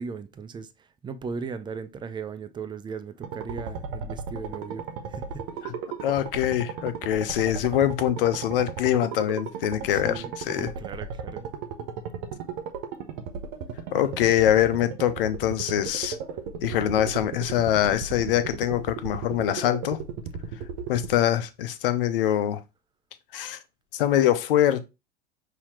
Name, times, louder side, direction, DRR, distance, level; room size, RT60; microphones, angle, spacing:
voice 1, 0.0-5.5 6.8-7.0 9.9-10.3 10.6-11.4, right 5 dB, 15° right, 0.5 m, -37 dB
sound 1, 3.2-21.2, right 6 dB, 50° right, 0.9 m, -35 dB
voice 2, 6.0-10.7 13.9-16.2 16.6-20.0 20.9-22.6 23.3-23.6 23.9-24.8, left 11 dB, 65° left, 0.7 m, -24 dB
5.6 x 2.9 x 3.0 m
figure-of-eight pair, 80°, 30 cm